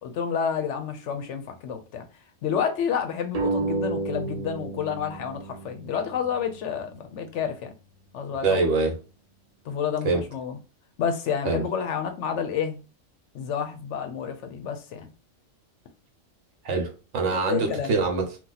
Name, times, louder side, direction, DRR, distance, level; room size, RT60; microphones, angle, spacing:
voice 1, 0.0-2.1 2.4-7.7 8.1-8.7 9.7-10.6 11.0-12.8 13.3-15.1 17.3-17.9, left 7 dB, 70° left, 0.8 m, -29 dB
sound 1, 3.3-6.5, right 3 dB, 40° right, 0.6 m, -31 dB
voice 2, 8.4-9.0 10.0-10.2 11.4-11.6 16.6-18.4, right 4 dB, 65° right, 1.1 m, -24 dB
2.8 x 2.3 x 3.8 m
omnidirectional pair, 1.3 m